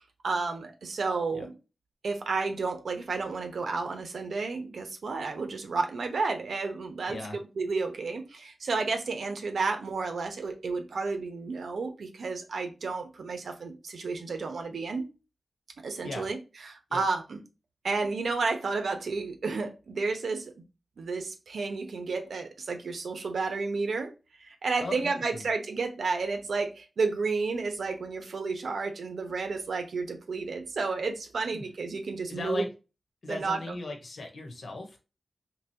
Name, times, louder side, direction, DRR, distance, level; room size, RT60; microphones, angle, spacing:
voice 1, 0.2-1.5 2.0-7.2 7.6-15.1 15.8-16.4 16.6-17.4 17.8-20.5 21.0-32.7 33.3-33.8, right 4 dB, 80° right, 0.8 m, -31 dB
voice 2, 7.1-7.4 16.0-16.3 16.9-17.0 24.8-25.4 31.5-31.6 32.3-32.7 33.2-35.0, left 2 dB, 65° left, 1.1 m, -37 dB
3.9 x 3.0 x 2.8 m
wide cardioid pair, 145°, 0 cm